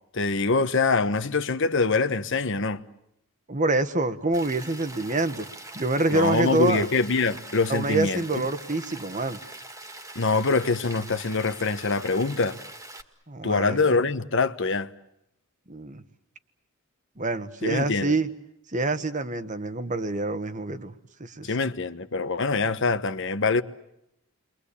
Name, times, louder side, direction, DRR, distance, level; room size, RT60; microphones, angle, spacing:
voice 1, 0.1-2.8 6.1-8.2 10.1-12.6 13.4-14.9 17.6-18.1 21.4-23.6, left 3 dB, 55° left, 1.2 m, -24 dB
voice 2, 3.5-5.5 5.7-6.9 7.7-9.4 13.3-13.8 15.7-16.0 17.2-18.3 18.7-20.9 21.2-21.5, right 2 dB, 35° right, 1.4 m, -26 dB
Rain, 4.3-13.0, right 2 dB, 15° right, 2.1 m, -43 dB
30.0 x 23.5 x 8.5 m
head